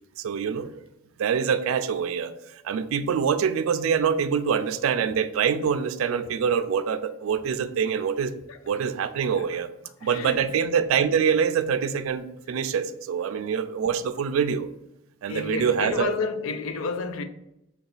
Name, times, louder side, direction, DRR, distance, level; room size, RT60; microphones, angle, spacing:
voice 1, 0.2-0.7 1.2-8.3 8.7-9.7 10.0-14.7 15.2-16.1, right 7 dB, 85° right, 0.3 m, -25 dB
voice 2, 10.0-10.5 15.3-17.2, left 4 dB, 80° left, 0.4 m, -30 dB
3.8 x 2.3 x 3.8 m
head